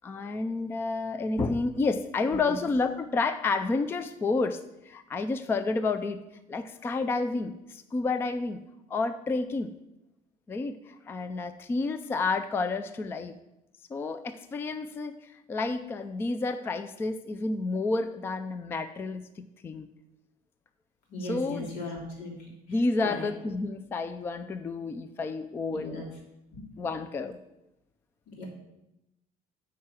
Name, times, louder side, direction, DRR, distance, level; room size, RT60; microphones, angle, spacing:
voice 1, 0.0-6.2 6.5-8.6 8.9-9.7 10.5-13.4 13.9-19.9 21.3-21.7 22.7-26.0 26.8-27.4, left 3 dB, 15° left, 11 dB, 0.3 m, -30 dB
voice 2, 21.1-22.3 22.7-23.3 25.7-26.1 26.5-26.6 28.3-28.5, left 2 dB, 85° left, -2 dB, 3.4 m, -38 dB
9.3 x 4.7 x 7.4 m, 0.90 s
cardioid pair, 165°, 15 cm